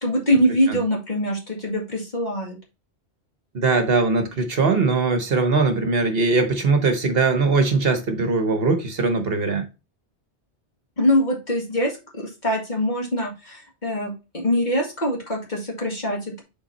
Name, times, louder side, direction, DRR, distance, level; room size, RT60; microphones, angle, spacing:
voice 1, 0.0-2.6 11.0-16.4, equal, 40° left, 2.2 m, -23 dB
voice 2, 3.5-9.7, right 3 dB, 60° right, 1.2 m, -21 dB
7.0 x 3.9 x 4.0 m
omnidirectional pair, 1.2 m